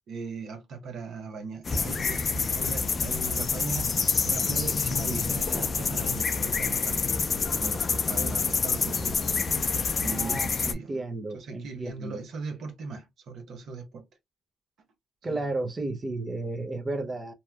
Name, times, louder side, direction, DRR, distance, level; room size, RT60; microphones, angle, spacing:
voice 1, 0.1-3.9 4.3-7.0 7.5-9.2 10.0-11.0 11.3-14.0 15.3-15.4, right 4 dB, 70° right, 0.8 m, -38 dB
sound 1, 1.6-10.7, left 4 dB, 45° left, 0.5 m, -27 dB
voice 2, 10.0-12.2 15.2-17.3, right 2 dB, 35° right, 0.6 m, -33 dB
2.7 x 2.3 x 2.2 m
supercardioid pair, 65°, 0 cm